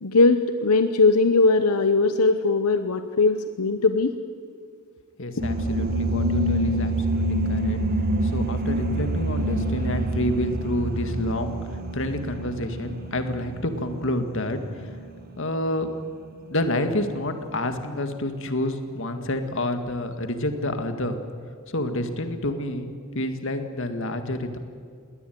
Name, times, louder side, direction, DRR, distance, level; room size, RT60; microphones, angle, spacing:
voice 1, 0.0-4.1, left 3 dB, 90° left, 9 dB, 0.9 m, -20 dB
voice 2, 5.2-7.8 8.2-11.6 11.9-14.9 15.4-15.9 16.5-21.2 21.7-24.6, left 1 dB, 60° left, 7 dB, 2.0 m, -28 dB
sound 1, 5.4-15.3, right 1 dB, 45° right, 1.8 m, -27 dB
21.0 x 18.0 x 9.3 m, 2.2 s
head